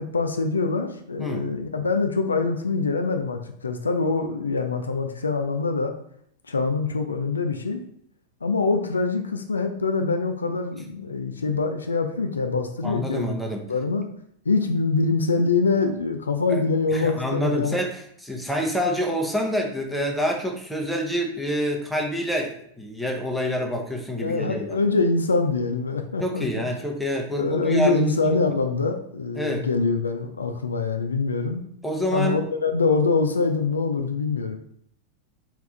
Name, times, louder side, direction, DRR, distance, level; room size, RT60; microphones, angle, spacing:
voice 1, 0.0-5.9 6.5-7.8 8.4-13.3 13.7-14.1 14.5-17.8 24.2-26.5 27.4-31.6 32.1-34.6, left 4 dB, 75° left, 6 dB, 0.4 m, -24 dB
voice 2, 12.8-13.6 16.5-16.6 16.9-24.8 26.2-28.1 29.4-29.7 31.8-32.4, equal, ahead, 0 dB, 0.8 m, -27 dB
3.5 x 3.1 x 3.7 m, 0.69 s
figure-of-eight pair, 90°, 0 cm